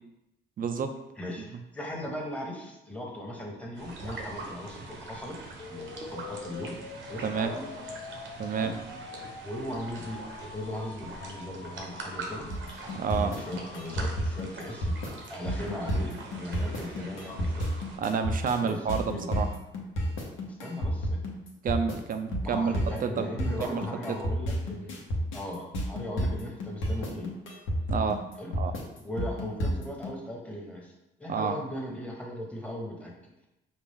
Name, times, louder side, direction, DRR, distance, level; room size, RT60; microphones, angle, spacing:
voice 1, 0.6-0.9 7.2-7.5 8.4-8.7 12.9-13.3 18.0-19.5 21.6-22.7 23.0-23.3 23.6-23.8 27.9-28.2 28.6-28.7 31.3-31.6, right 6 dB, 45° right, 8 dB, 0.5 m, -29 dB
voice 2, 1.2-5.3 5.7-6.7 7.1-7.6 8.6-8.7 9.4-10.2 10.5-12.5 13.2-14.9 15.3-17.7 18.6-19.4 20.6-21.2 22.4-25.0 25.3-27.3 28.4-28.5 29.0-30.9 31.2-33.3, left 1 dB, 5° left, -1 dB, 1.0 m, -38 dB
sound 1, 3.7-18.0, right 3 dB, 70° right, 0.9 m, -43 dB
sound 2, 5.6-15.6, left 4 dB, 35° left, 0.6 m, -46 dB
sound 3, 12.5-30.1, equal, 85° left, 1.0 m, -30 dB
5.2 x 2.4 x 3.5 m, 0.92 s
cardioid pair, 90°, 20 cm